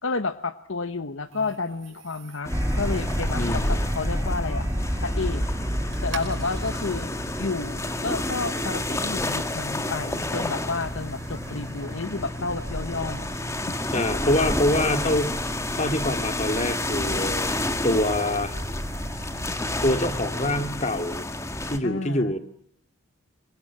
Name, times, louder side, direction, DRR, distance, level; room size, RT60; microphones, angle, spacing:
voice 1, 0.0-4.7 5.0-5.5 6.0-7.1 7.4-13.3 13.7-13.8 21.8-22.3, left 3 dB, 65° left, 12 dB, 1.0 m, -31 dB
sound 1, 1.3-20.9, right 2 dB, 65° right, 5.3 m, -41 dB
sound 2, 2.4-21.8, left 1 dB, 15° left, 1.8 m, -30 dB
sound 3, 2.5-9.0, equal, 15° right, 3.5 m, -29 dB
voice 2, 3.3-3.8 13.9-15.4 15.7-17.5 17.8-18.5 19.8-21.3 21.7-22.4, left 1 dB, 30° left, 8 dB, 2.3 m, -25 dB
26.5 x 23.5 x 7.4 m, 0.68 s
head